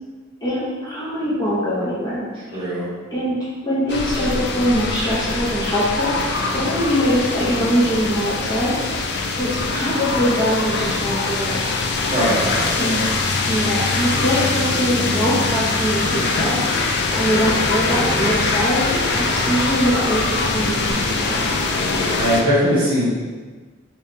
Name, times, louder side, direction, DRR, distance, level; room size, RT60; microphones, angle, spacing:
voice 1, 0.4-2.7 3.1-3.4 3.6-6.1 6.5-8.8 9.4-11.7 12.8-13.0 13.5-16.6 16.8-21.5, equal, 20° left, -9 dB, 0.7 m, -22 dB
voice 2, 2.5-2.9 12.1-12.7 22.1-23.1, equal, 25° right, -9 dB, 1.1 m, -20 dB
sound 1, 3.9-22.4, left 3 dB, 55° left, 0.4 m, -22 dB
3.4 x 3.1 x 2.7 m, 1.4 s
head